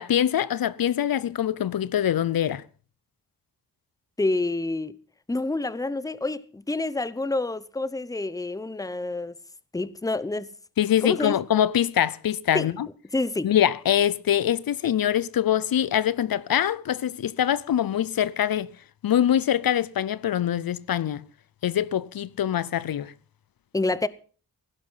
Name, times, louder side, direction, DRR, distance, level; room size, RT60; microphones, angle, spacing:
voice 1, 0.0-2.6 10.8-12.9 13.4-18.7 19.0-21.2 21.6-23.1, left 10 dB, 70° left, 0.7 m, -24 dB
voice 2, 4.2-4.9 5.3-9.3 9.7-10.5 11.0-11.3 12.5-12.7 13.1-13.5 23.7-24.1, left 2 dB, 10° left, 0.8 m, -28 dB
16.0 x 11.5 x 5.7 m
wide cardioid pair, 95°, 36 cm